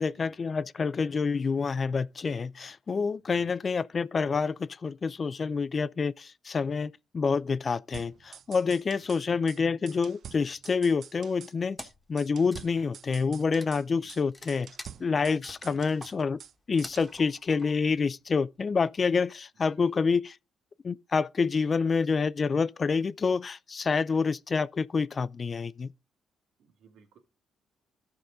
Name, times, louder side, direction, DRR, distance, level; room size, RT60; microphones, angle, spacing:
voice 1, 0.0-14.7 15.0-16.4 16.7-20.4 20.8-25.9, left 5 dB, 40° left, 0.4 m, -28 dB
sound 1, 7.9-9.2 9.5-9.6 9.9-11.5 11.8-11.9 12.2-13.8 14.1-14.2 14.5-16.5 16.8-17.1, right 8 dB, 65° right, 0.6 m, -47 dB
Wood, 11.8-12.1 12.4-18.0, left 1 dB, 15° left, 1.3 m, -48 dB
voice 2, 14.0-14.3 15.6-15.8 19.7-19.9 26.6-27.2, right 7 dB, 80° right, 2.3 m, -56 dB
13.0 x 4.9 x 3.8 m
cardioid pair, 90°, 0 cm